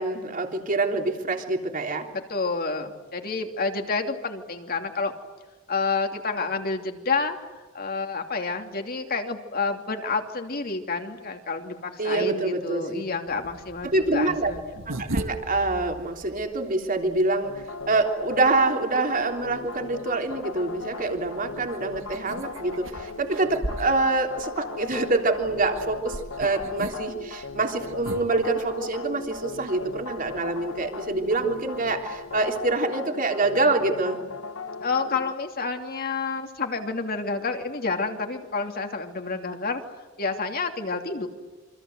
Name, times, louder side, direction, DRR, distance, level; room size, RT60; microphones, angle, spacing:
voice 1, 0.0-2.1 12.0-13.0 13.8-14.5 14.9-34.2, right 2 dB, 40° right, 4 dB, 3.5 m, -26 dB
voice 2, 2.1-5.1 5.7-7.4 7.7-14.7 34.8-39.8 40.2-41.3, left 4 dB, 45° left, 4 dB, 2.8 m, -29 dB
sound 1, 13.3-32.7, right 1 dB, 70° right, 2.0 m, -41 dB
sound 2, 17.4-35.3, left 4 dB, 75° left, 1.1 m, -38 dB
28.0 x 25.5 x 8.0 m, 1.2 s
head